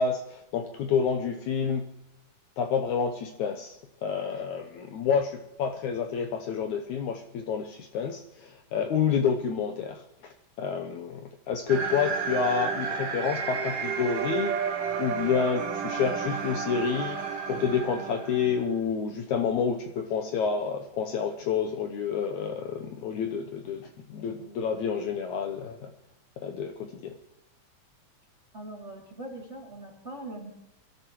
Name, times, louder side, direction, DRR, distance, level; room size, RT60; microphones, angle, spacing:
voice 1, 0.0-1.8 2.6-17.2 17.5-25.9 26.4-27.1, left 6 dB, 75° left, 5 dB, 2.0 m, -29 dB
sound 1, 11.7-18.8, right 6 dB, 70° right, 3.3 m, -32 dB
voice 2, 28.5-30.5, right 1 dB, 20° right, -2 dB, 2.7 m, -41 dB
24.0 x 13.5 x 3.1 m, 0.91 s
omnidirectional pair, 4.0 m